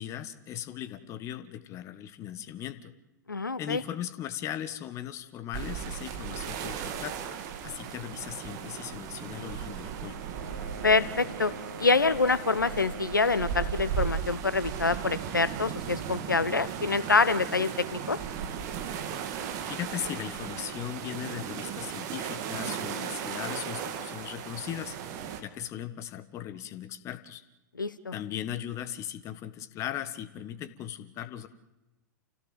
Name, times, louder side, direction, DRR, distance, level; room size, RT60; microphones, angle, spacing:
voice 1, 0.0-2.9 3.6-7.1 7.6-10.2 19.7-25.0 25.4-27.4 28.1-31.5, left 11 dB, 30° left, 12 dB, 1.5 m, -38 dB
voice 2, 3.3-3.8 10.8-11.5 11.8-18.2 27.8-28.1, left 4 dB, 80° left, 15 dB, 1.3 m, -26 dB
sound 1, 5.5-25.4, right 8 dB, 35° right, 2.5 m, -36 dB
sound 2, 10.3-14.2, right 2 dB, 85° right, 1.1 m, -43 dB
29.0 x 16.5 x 8.0 m, 1.0 s
figure-of-eight pair, 100°, 10 cm